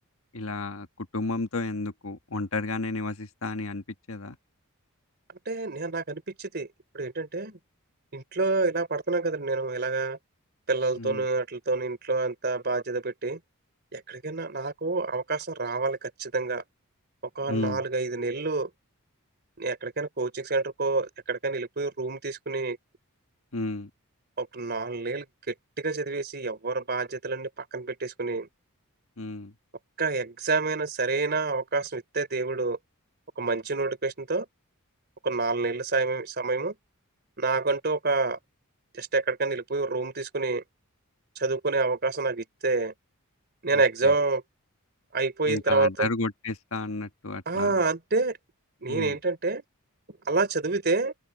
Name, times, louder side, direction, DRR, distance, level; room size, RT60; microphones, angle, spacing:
voice 1, 0.3-4.4 11.0-11.3 17.5-17.8 23.5-23.9 29.2-29.5 43.7-44.1 45.5-47.8 48.9-49.2, left 3 dB, 70° left, 1.5 m, -32 dB
voice 2, 5.4-6.7 6.9-7.6 8.1-10.2 10.7-13.4 13.9-16.6 17.3-18.7 19.6-22.8 24.4-28.5 30.0-32.8 33.4-34.5 35.2-36.7 37.4-38.4 38.9-40.6 41.4-42.9 43.6-44.4 45.1-46.1 47.5-48.4 48.8-49.6 50.2-51.1, right 3 dB, 45° right, 3.3 m, -28 dB
open air
head